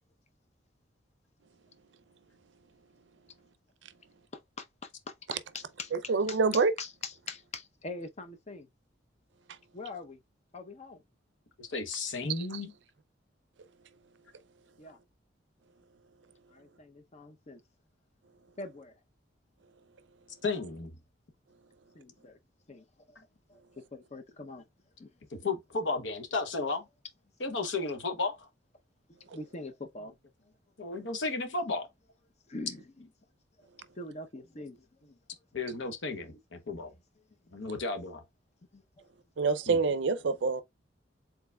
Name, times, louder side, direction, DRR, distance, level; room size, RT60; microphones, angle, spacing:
voice 1, 4.3-5.9 6.3-8.7 9.7-10.2 10.5-11.0 14.8-15.0 16.5-17.6 18.6-19.0 21.9-22.4 22.7-23.2 23.5-24.7 25.0-25.1 29.1-30.1 31.0-31.1 31.4-31.5 32.5-32.8 34.0-35.0 36.3-36.4 37.4-37.5 38.7-38.8, left 3 dB, 35° left, 0.7 m, -44 dB
voice 2, 5.9-6.7 12.4-12.6 39.4-40.6, right 4 dB, 65° right, 0.5 m, -27 dB
voice 3, 11.6-12.7 20.4-20.9 25.3-26.9 27.4-28.5 30.8-31.9 35.5-36.9 37.5-38.2 39.7-39.8, left 3 dB, 75° left, 0.9 m, -33 dB
4.5 x 3.9 x 2.2 m
head